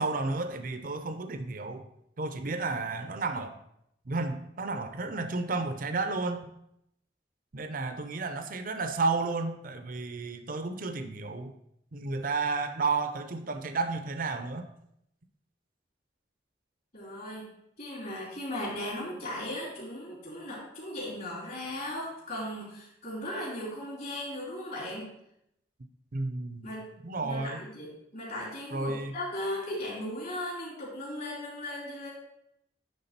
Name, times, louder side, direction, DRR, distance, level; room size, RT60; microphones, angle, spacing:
voice 1, 0.0-1.9 2.2-3.6 4.1-6.5 7.5-11.5 11.9-14.7 26.1-26.7 27.0-27.6 28.7-29.1, right 3 dB, 50° right, 8 dB, 0.7 m, -32 dB
voice 2, 16.9-25.1 26.6-26.9 27.2-32.1, left 1 dB, 50° left, -6 dB, 3.6 m, -37 dB
9.7 x 3.7 x 5.8 m, 0.78 s
head